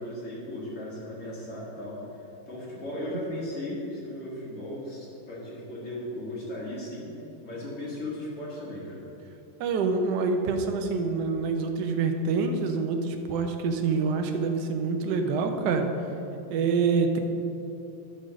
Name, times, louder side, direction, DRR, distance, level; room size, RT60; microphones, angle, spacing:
voice 1, 0.0-7.1 7.4-9.0, left 1 dB, 40° left, -5 dB, 2.1 m, -36 dB
voice 2, 9.6-15.9 16.5-17.2, right 4 dB, 65° right, 5 dB, 1.1 m, -26 dB
11.0 x 3.9 x 6.2 m, 2.9 s
omnidirectional pair, 2.3 m